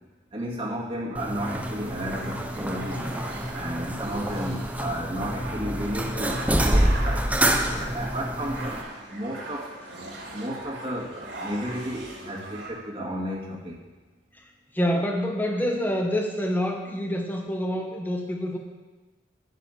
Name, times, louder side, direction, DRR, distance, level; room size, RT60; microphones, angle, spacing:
voice 1, 0.3-3.0 3.5-7.3 7.7-9.7 10.3-13.8, equal, 30° right, -4 dB, 2.6 m, -33 dB
sound 1, 1.1-8.8, right 1 dB, 10° right, 0.8 m, -27 dB
sound 2, 1.4-12.7, right 2 dB, 65° right, 4.4 m, -40 dB
voice 2, 14.7-18.6, equal, 10° left, 1 dB, 1.5 m, -27 dB
11.5 x 7.5 x 8.5 m, 1.2 s
head